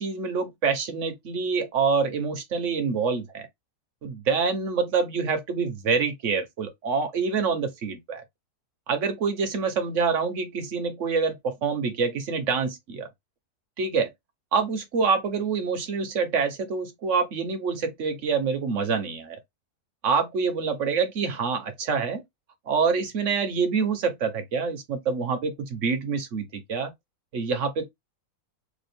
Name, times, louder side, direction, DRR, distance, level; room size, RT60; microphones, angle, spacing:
voice 1, 0.0-3.5 4.0-8.2 8.9-13.1 13.8-14.1 14.5-19.4 20.0-22.2 22.7-26.9 27.3-27.9, right 5 dB, 55° right, 1.3 m, -26 dB
3.5 x 3.1 x 3.4 m
omnidirectional pair, 1.6 m